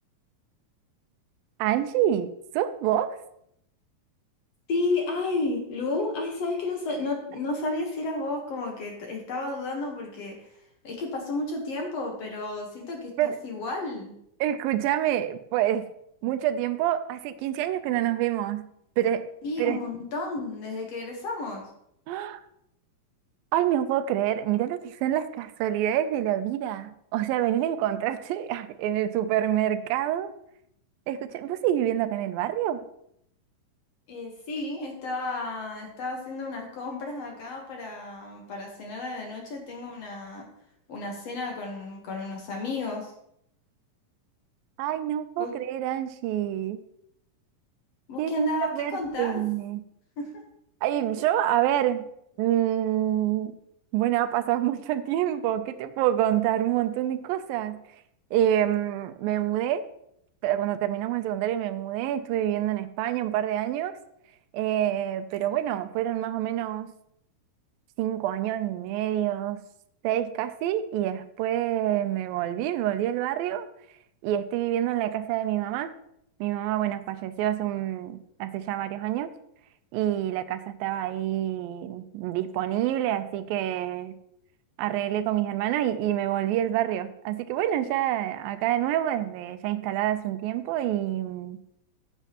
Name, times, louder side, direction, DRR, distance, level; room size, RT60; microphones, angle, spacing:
voice 1, 1.6-3.2 13.2-13.4 14.4-15.9 16.2-18.7 19.0-19.3 19.6-19.8 22.1-22.4 23.5-30.3 31.1-32.9 44.8-46.8 48.2-49.8 50.8-52.1 52.4-53.6 53.9-57.8 58.3-59.8 60.4-64.0 64.5-66.9 68.0-69.6 70.0-73.7 74.2-75.9 76.4-79.3 79.9-84.1 84.8-91.6, right 12 dB, 85° right, 11 dB, 2.4 m, -27 dB
voice 2, 4.7-10.5 10.8-14.1 19.4-21.7 34.1-40.5 40.9-43.1 45.4-45.5 48.1-49.4 50.2-50.3, left 2 dB, 60° left, 1 dB, 2.0 m, -32 dB
14.5 x 8.2 x 3.0 m, 0.75 s
omnidirectional pair, 4.1 m